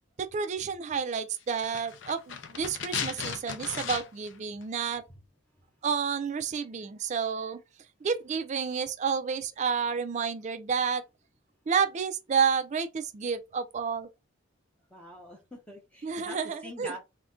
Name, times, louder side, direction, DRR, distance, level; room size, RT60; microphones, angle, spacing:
voice 1, 0.2-5.0 5.8-7.6 8.0-11.0 11.7-14.1 16.0-16.9, right 6 dB, 35° right, 0.3 m, -30 dB
sound 1, 1.5-4.4 4.6-4.7, left 7 dB, 60° left, 0.4 m, -36 dB
voice 2, 14.9-17.0, right 1 dB, 5° left, 0.6 m, -44 dB
2.5 x 2.2 x 3.5 m
head